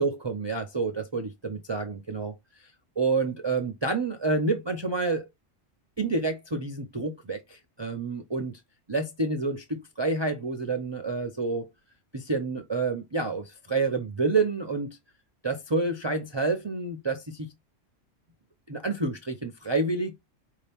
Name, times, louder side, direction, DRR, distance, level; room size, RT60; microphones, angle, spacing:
voice 1, 0.0-2.3 3.0-5.3 6.0-8.5 8.9-11.7 12.1-15.0 15.4-17.5 18.7-20.1, right 3 dB, 35° right, 0.4 m, -28 dB
4.8 x 2.8 x 3.4 m
omnidirectional pair, 1.3 m